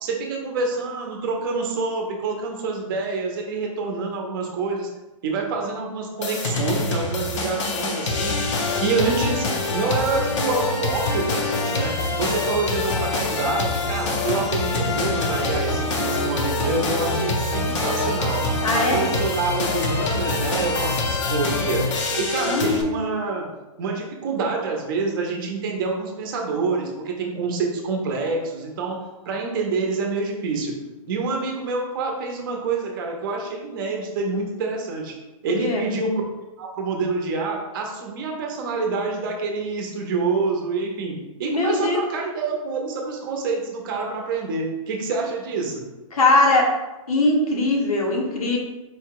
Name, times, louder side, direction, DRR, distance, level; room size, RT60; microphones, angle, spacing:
voice 1, 0.0-4.9 5.2-8.3 8.8-18.4 18.7-21.8 22.2-23.5 23.8-29.0 29.3-30.7 31.1-35.2 35.4-36.3 36.6-45.8, right 4 dB, 40° right, 1 dB, 0.7 m, -27 dB
sound 1, 6.2-22.8, left 3 dB, 55° left, 0.8 m, -25 dB
voice 2, 18.6-19.1 22.4-22.9 35.6-35.9 41.5-42.0 46.1-46.7 47.1-48.6, left 2 dB, 85° left, 0 dB, 1.3 m, -20 dB
4.5 x 2.3 x 4.6 m, 1.1 s
hypercardioid pair, 170°, 18 cm